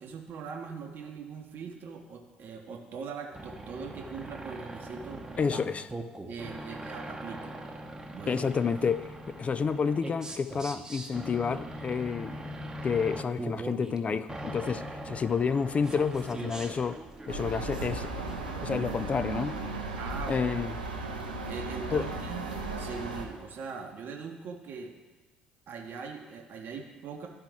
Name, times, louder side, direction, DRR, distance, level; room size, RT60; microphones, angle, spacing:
voice 1, 0.0-5.3 6.3-7.6 8.1-8.4 15.1-15.2 20.0-20.4 21.5-22.5 22.8-24.9 25.7-27.3, right 5 dB, 45° right, 3 dB, 0.8 m, -41 dB
sound 1, 3.3-19.7, right 1 dB, 15° right, 0.9 m, -41 dB
voice 2, 5.4-5.9 8.3-12.5 12.8-17.0 17.3-18.1 18.6-19.6 20.3-20.7 21.9-22.0, left 6 dB, 30° left, 13 dB, 0.3 m, -29 dB
sound 2, 17.3-23.2, right 3 dB, 85° right, 0.7 m, -36 dB
12.0 x 4.6 x 3.7 m, 1.2 s
figure-of-eight pair, 50°, 4 cm